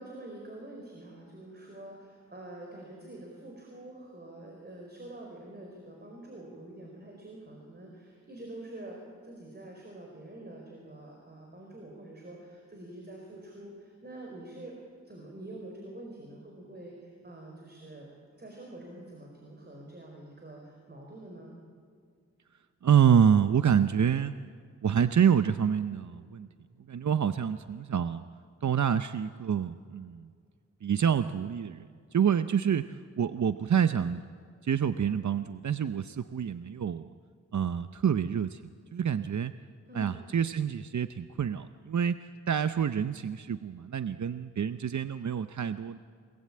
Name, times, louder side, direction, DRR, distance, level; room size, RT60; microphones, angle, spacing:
voice 1, 0.0-14.7 15.0-18.1 18.4-21.5 39.9-40.2, right 1 dB, 35° right, 0 dB, 4.8 m, -46 dB
voice 2, 22.8-24.4 24.8-26.5 26.9-28.2 28.6-30.3 30.8-34.2 34.6-37.1 37.5-38.6 38.9-39.5 39.9-46.0, right 8 dB, 75° right, 11 dB, 0.7 m, -27 dB
29.5 x 20.0 x 8.6 m, 2.2 s
wide cardioid pair, 90°, 29 cm